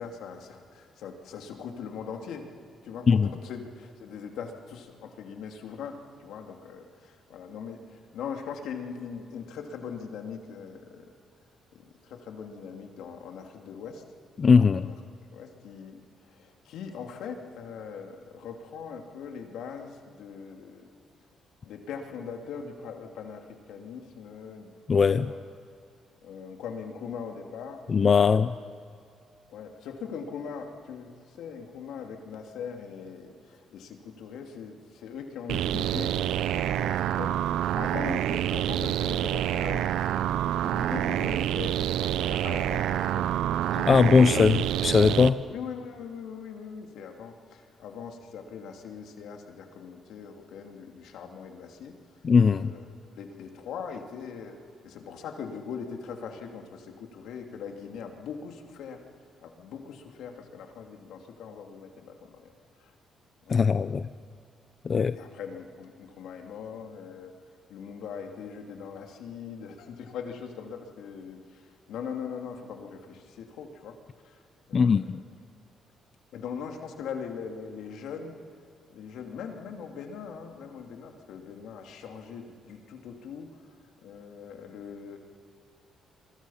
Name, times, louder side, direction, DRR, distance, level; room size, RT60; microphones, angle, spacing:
voice 1, 0.0-2.5 2.8-11.1 11.7-14.0 14.8-15.0 15.3-16.0 16.3-20.8 21.6-24.7 25.1-25.5 26.2-27.8 28.2-28.5 29.5-37.4 37.7-40.3 40.6-43.3 44.3-44.4 45.5-52.0 52.5-52.8 53.1-54.6 54.8-59.0 59.4-62.5 62.8-62.9 63.4-63.6 65.1-67.3 67.7-74.0 74.2-74.4 74.7-75.0 76.3-78.3 78.9-83.5 84.0-85.2, left 6 dB, 80° left, 2.7 m, -41 dB
voice 2, 14.4-14.9 24.9-25.3 27.9-28.5 43.7-45.4 52.2-52.7 63.5-64.1 64.8-65.2 74.7-75.2, left 5 dB, 40° left, 0.6 m, -20 dB
sound 1, 35.5-45.3, right 12 dB, 85° right, 0.5 m, -27 dB
27.0 x 24.0 x 5.8 m
cardioid pair, 90°, 0 cm